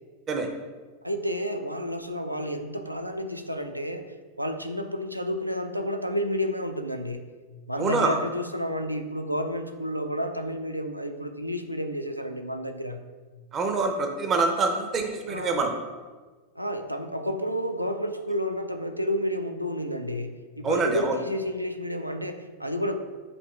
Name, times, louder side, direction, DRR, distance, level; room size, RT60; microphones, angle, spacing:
voice 1, 1.0-4.1 4.4-7.3 7.7-13.0 15.3-15.7 16.6-22.9, equal, 90° right, 6 dB, 0.3 m, -30 dB
voice 2, 7.8-8.2 13.5-15.7 20.6-21.2, right 3 dB, 25° right, 4 dB, 0.5 m, -25 dB
7.3 x 2.8 x 2.3 m, 1.4 s
figure-of-eight pair, 90°, 0 cm